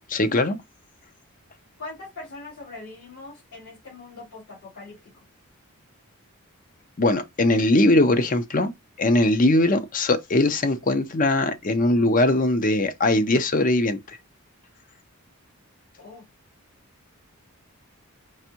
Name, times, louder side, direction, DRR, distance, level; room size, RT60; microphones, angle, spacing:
voice 1, 0.1-0.6 7.0-8.7 9.0-14.0, left 2 dB, 40° left, 0.6 m, -20 dB
voice 2, 1.8-5.0 16.0-16.3, left 3 dB, 75° left, 2.8 m, -41 dB
4.7 x 2.6 x 2.9 m
head